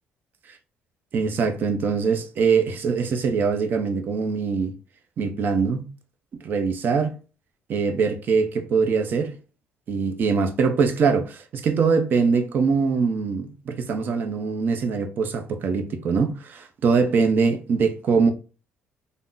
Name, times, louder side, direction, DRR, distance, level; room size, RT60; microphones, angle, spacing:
voice 1, 1.1-4.7 5.2-5.9 6.4-7.1 7.7-9.3 9.9-18.3, right 5 dB, 55° right, 0.6 m, -23 dB
3.6 x 2.0 x 2.5 m
supercardioid pair, 75°, 4 cm